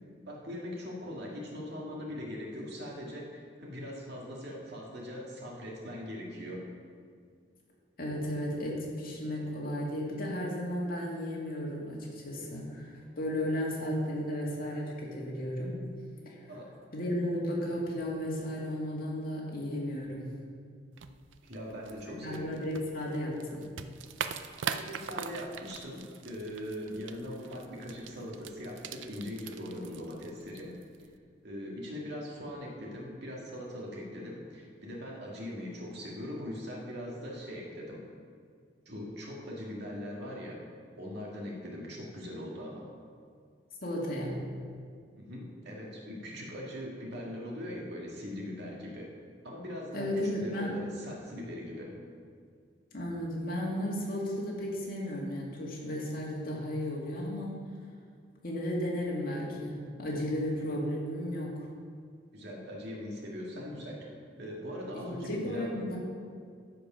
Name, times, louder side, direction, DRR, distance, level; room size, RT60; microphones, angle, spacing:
voice 1, 0.3-6.6 16.4-16.7 21.5-22.5 24.6-30.7 31.4-38.0 38.9-40.6 41.0-42.9 45.2-49.1 49.4-50.1 50.4-52.0 62.3-64.1 64.4-65.7, equal, 60° right, -3 dB, 2.1 m, -41 dB
voice 2, 8.0-15.7 16.3-16.4 16.9-20.3 22.1-23.8 43.8-44.4 49.9-50.8 52.9-57.6 58.4-61.6 64.9-66.0, equal, 50° left, -3 dB, 2.2 m, -34 dB
sound 1, 20.9-31.2, right 7 dB, 75° right, 0.5 m, -43 dB
14.0 x 5.2 x 5.7 m, 2.1 s
head